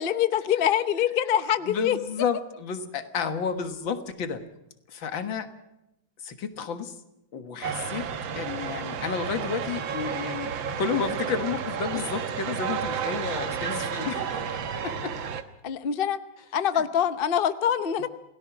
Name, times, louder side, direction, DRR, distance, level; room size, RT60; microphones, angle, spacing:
voice 1, 0.0-2.0 15.6-16.2 16.5-18.1, left 9 dB, 45° left, 12 dB, 0.8 m, -24 dB
voice 2, 1.7-4.4 4.9-5.5 6.2-7.0 7.3-8.1 8.3-15.2 16.7-16.8, left 6 dB, 80° left, 9 dB, 2.3 m, -31 dB
sound 1, 7.6-15.4, right 7 dB, 85° right, 2.0 m, -31 dB
28.0 x 17.5 x 6.0 m, 0.86 s
omnidirectional pair, 2.1 m